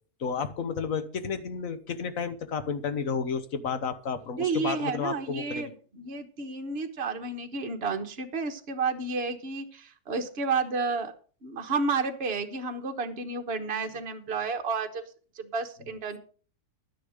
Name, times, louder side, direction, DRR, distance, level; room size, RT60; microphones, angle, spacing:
voice 1, 0.2-5.7, left 5 dB, 65° left, 11 dB, 1.4 m, -32 dB
voice 2, 4.4-11.1 11.4-15.1 15.3-16.2, right 4 dB, 45° right, 5 dB, 1.4 m, -31 dB
11.5 x 10.0 x 5.0 m, 0.40 s
omnidirectional pair, 1.6 m